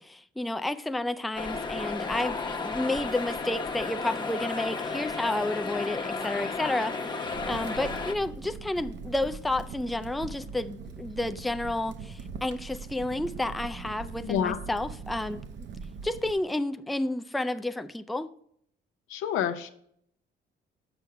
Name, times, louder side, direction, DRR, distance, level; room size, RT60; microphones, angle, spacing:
voice 1, 0.1-15.4 16.0-18.3, left 2 dB, ahead, 0.3 m, -31 dB
sound 1, 1.4-8.2, left 4 dB, 20° left, 0.8 m, -33 dB
Crackle, 7.3-16.3, right 5 dB, 65° right, 0.7 m, -41 dB
voice 2, 14.2-14.6 19.1-19.7, left 9 dB, 90° left, 0.7 m, -28 dB
7.1 x 5.7 x 4.7 m
cardioid pair, 90°, 20 cm